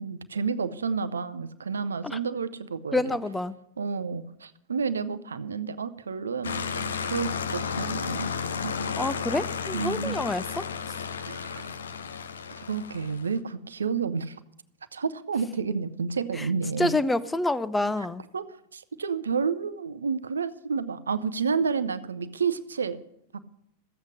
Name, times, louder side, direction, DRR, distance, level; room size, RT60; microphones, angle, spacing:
voice 1, 0.0-3.2 3.8-8.3 8.6-9.0 9.7-10.2 11.3-11.7 12.6-14.4 14.9-16.9 18.3-18.4 18.7-23.0 23.3-23.4, right 5 dB, 70° right, 14 dB, 0.5 m, -30 dB
voice 2, 2.9-3.6 9.0-10.7 16.4-16.5 16.8-18.2, left 2 dB, 10° left, 15 dB, 0.5 m, -27 dB
sound 1, 6.4-13.3, left 6 dB, 70° left, 0.7 m, -33 dB
13.5 x 8.1 x 6.4 m, 0.78 s
figure-of-eight pair, 90°, 0 cm